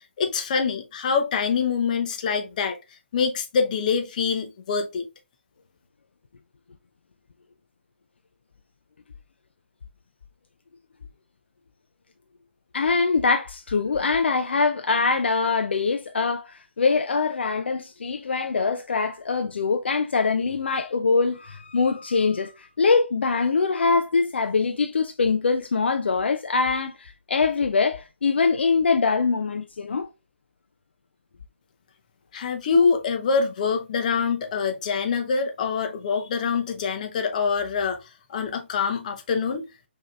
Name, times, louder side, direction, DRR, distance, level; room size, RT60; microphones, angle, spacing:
voice 1, 0.2-2.8 3.1-5.1 32.3-38.0 38.3-39.7, left 5 dB, 40° left, 0.7 m, -25 dB
voice 2, 12.7-30.1, left 4 dB, 65° left, 0.4 m, -23 dB
4.8 x 2.9 x 2.3 m
figure-of-eight pair, 140°, 6 cm